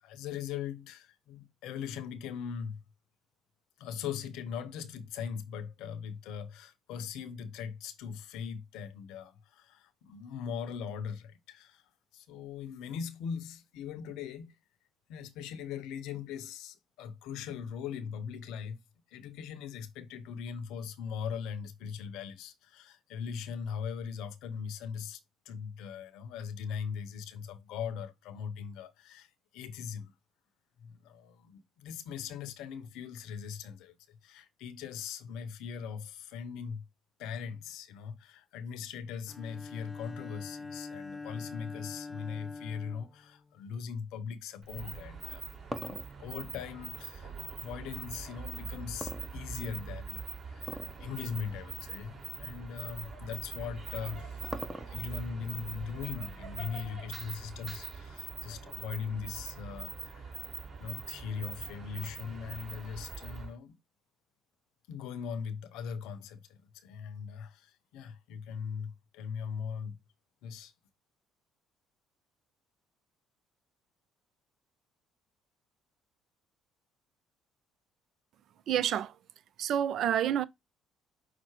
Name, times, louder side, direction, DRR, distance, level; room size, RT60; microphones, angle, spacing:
voice 1, 0.0-2.8 3.8-11.8 12.1-14.6 15.1-18.8 19.1-30.1 30.8-36.9 37.2-45.4 45.9-47.3 47.6-54.5 54.9-60.5 60.8-63.8 64.9-70.0 70.4-70.7, left 7 dB, 70° left, 0.7 m, -40 dB
Bowed string instrument, 39.3-43.9, left 3 dB, 20° left, 0.4 m, -44 dB
sound 1, 44.6-63.5, right 4 dB, 35° right, 2.1 m, -43 dB
sound 2, 45.2-47.6 49.0-49.9 50.6-51.0 51.4-51.5 52.2-52.4 53.7-55.2, right 1 dB, 10° right, 0.8 m, -42 dB
voice 2, 78.7-79.1 79.6-80.4, right 10 dB, 60° right, 0.4 m, -28 dB
5.7 x 2.1 x 4.5 m
hypercardioid pair, 55°, 0 cm